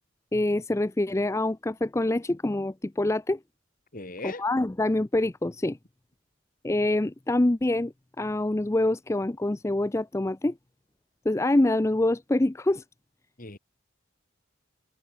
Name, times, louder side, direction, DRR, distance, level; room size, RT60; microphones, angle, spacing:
voice 1, 0.3-3.4 4.2-5.8 6.6-10.5 11.3-12.8, left 1 dB, 15° left, 0.4 m, -25 dB
voice 2, 3.9-4.4 13.4-13.6, left 2 dB, 45° left, 2.6 m, -38 dB
head